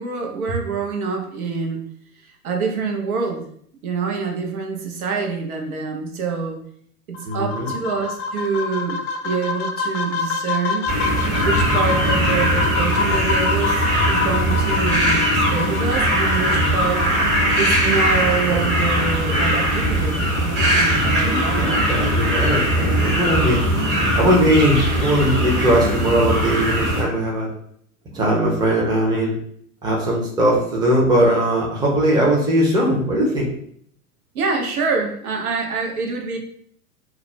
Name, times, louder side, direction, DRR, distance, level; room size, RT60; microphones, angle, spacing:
voice 1, 0.0-1.9 2.2-3.5 3.8-6.6 7.3-9.0 9.2-10.9 11.4-17.1 17.6-21.9 28.1-28.2 34.3-36.4, right 5 dB, 75° right, 1 dB, 0.7 m, -26 dB
sound 1, 7.1-18.1, left 5 dB, 55° left, 0.5 m, -27 dB
voice 2, 7.2-7.7 21.2-23.6 24.1-27.5 28.1-29.4 29.8-33.5, right 1 dB, 10° right, -3 dB, 0.6 m, -19 dB
sound 2, 10.9-27.0, right 1 dB, 30° right, 1.1 m, -20 dB
2.3 x 2.0 x 3.1 m, 0.65 s
hypercardioid pair, 95°, 44 cm